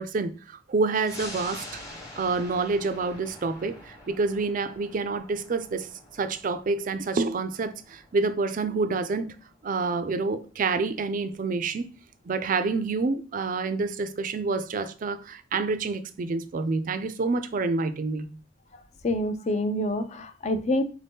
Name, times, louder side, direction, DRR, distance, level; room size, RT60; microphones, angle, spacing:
voice 1, 0.0-1.7 2.2-9.4 9.6-11.9 12.3-18.4, right 3 dB, 45° right, 0.4 m, -28 dB
sound 1, 1.1-12.0 12.4-12.5, left 1 dB, 20° left, 1.0 m, -46 dB
voice 2, 19.0-20.8, left 1 dB, 35° left, 0.4 m, -26 dB
4.1 x 2.7 x 3.5 m
head